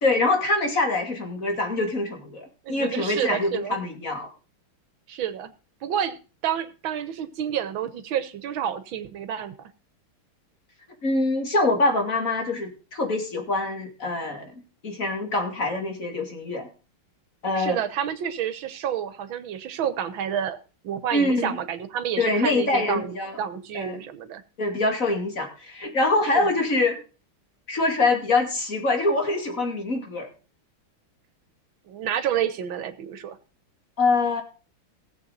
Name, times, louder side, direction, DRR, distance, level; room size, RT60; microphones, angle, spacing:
voice 1, 0.0-4.3 11.0-14.5 14.8-16.7 17.4-17.8 21.1-21.6 22.2-23.4 23.7-24.0 24.6-27.0 27.7-30.3 34.0-34.4, left 2 dB, 40° left, 2.8 m, -24 dB
voice 2, 2.7-3.8 5.1-5.5 5.8-9.7 17.6-20.6 20.8-24.4 26.4-26.5 31.9-33.4, right 9 dB, 70° right, 1.8 m, -29 dB
16.5 x 7.9 x 4.0 m
omnidirectional pair, 2.3 m